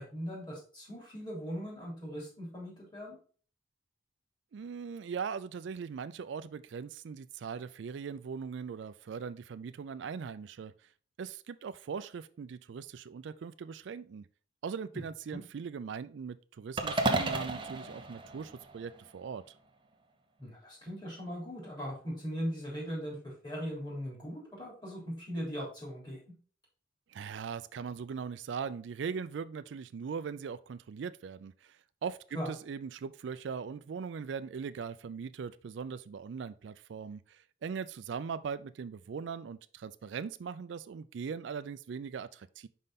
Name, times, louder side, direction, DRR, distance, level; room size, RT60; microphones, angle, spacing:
voice 1, 0.0-3.2 15.3-15.4 20.4-26.2 32.3-32.5, equal, 25° left, 3.3 m, -39 dB
voice 2, 4.5-10.7 11.2-14.3 14.6-19.5 27.1-42.7, right 6 dB, 75° right, 0.4 m, -40 dB
sound 1, 16.8-19.1, right 2 dB, 25° right, 0.7 m, -33 dB
5.5 x 5.3 x 4.0 m
head